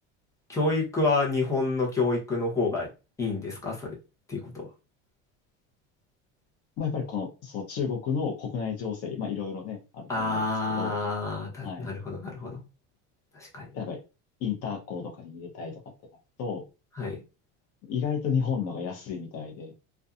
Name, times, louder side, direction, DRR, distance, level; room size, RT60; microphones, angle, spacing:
voice 1, 0.5-2.9 3.2-4.0 4.3-4.7 10.1-12.6 13.3-13.7 17.0-17.2, left 3 dB, 10° left, -3 dB, 0.8 m, -28 dB
voice 2, 6.8-10.4 10.8-10.9 11.6-11.9 13.7-14.0 14.4-15.8 16.4-16.6 17.9-19.7, left 6 dB, 45° left, 3 dB, 0.7 m, -32 dB
2.6 x 2.3 x 2.4 m, 0.30 s
supercardioid pair, 130°, 34 cm